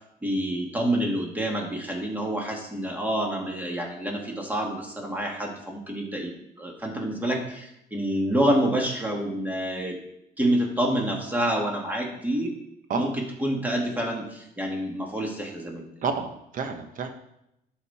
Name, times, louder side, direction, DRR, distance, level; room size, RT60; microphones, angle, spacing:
voice 1, 0.2-6.3 6.6-10.0 10.4-12.5 12.9-15.8, right 1 dB, 10° right, 0 dB, 2.3 m, -27 dB
voice 2, 16.0-17.1, right 5 dB, 55° right, 6 dB, 1.3 m, -30 dB
11.5 x 5.5 x 4.3 m, 0.81 s
cardioid pair, 110°, 17 cm